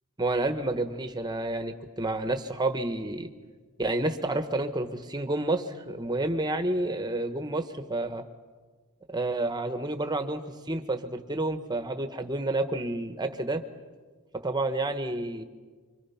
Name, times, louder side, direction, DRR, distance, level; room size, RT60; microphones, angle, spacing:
voice 1, 0.2-3.3 3.8-8.2 9.1-10.4 10.7-13.6 14.4-15.4, right 2 dB, 20° right, 8 dB, 1.2 m, -29 dB
25.5 x 25.0 x 5.8 m, 1.5 s
head